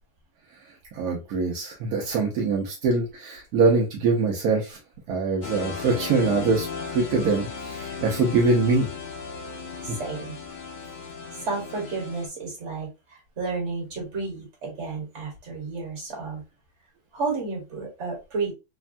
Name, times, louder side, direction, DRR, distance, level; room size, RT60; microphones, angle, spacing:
voice 1, 0.9-4.8 5.1-8.9, right 3 dB, 80° right, -1 dB, 1.2 m, -23 dB
sound 1, 5.4-12.3, left 5 dB, 80° left, 0.4 m, -36 dB
voice 2, 9.8-10.4 11.3-16.4 17.1-18.5, right 4 dB, 50° right, 0 dB, 1.6 m, -32 dB
3.4 x 2.2 x 2.4 m, 0.27 s
omnidirectional pair, 1.6 m